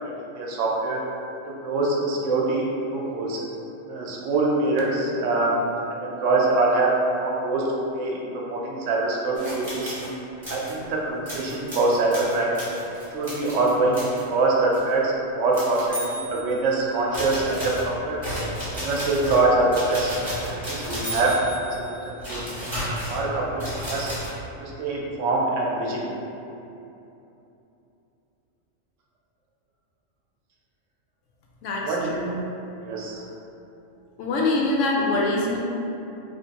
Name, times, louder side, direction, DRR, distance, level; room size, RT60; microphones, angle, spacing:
voice 1, 0.4-1.0 1.6-3.4 3.9-5.6 5.9-7.6 7.9-10.1 10.5-12.6 13.1-18.2 18.7-20.1 20.4-21.3 21.6-22.4 23.1-24.1 24.6-26.1 31.8-32.1 32.8-33.2, right 2 dB, 75° right, -3 dB, 0.9 m, -24 dB
sound 1, 9.4-10.1 10.4-10.8 11.3-14.2 14.7-14.9 15.5-16.7 17.1-24.3, equal, 25° right, 1.1 m, -33 dB
voice 2, 31.6-32.3 34.2-35.6, left 2 dB, 80° left, -2 dB, 0.9 m, -24 dB
3.2 x 2.8 x 2.8 m, 2.8 s
omnidirectional pair, 1.3 m